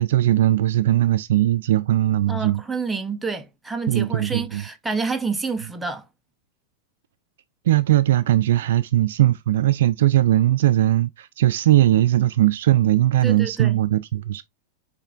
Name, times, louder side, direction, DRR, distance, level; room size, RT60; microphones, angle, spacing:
voice 1, 0.0-2.6 3.9-4.6 7.7-14.4, right 13 dB, 75° right, 0.3 m, -19 dB
voice 2, 2.3-6.0 13.2-13.8, right 4 dB, 10° right, 0.6 m, -28 dB
6.5 x 3.3 x 2.4 m
hypercardioid pair, 120°, 0 cm